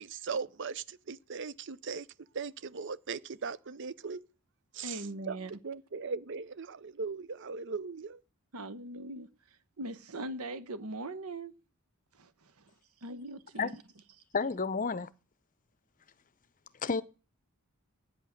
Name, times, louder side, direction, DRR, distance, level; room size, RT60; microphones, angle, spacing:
voice 1, 0.0-2.1 2.3-4.2 4.7-8.2, right 5 dB, 55° right, 0.6 m, -39 dB
voice 2, 4.8-5.5 8.5-9.3 9.8-11.6 12.1-12.7 13.0-13.8, right 2 dB, 80° right, 1.1 m, -40 dB
voice 3, 14.3-15.1 16.8-17.0, left 4 dB, 35° left, 0.6 m, -30 dB
9.7 x 8.2 x 6.4 m
head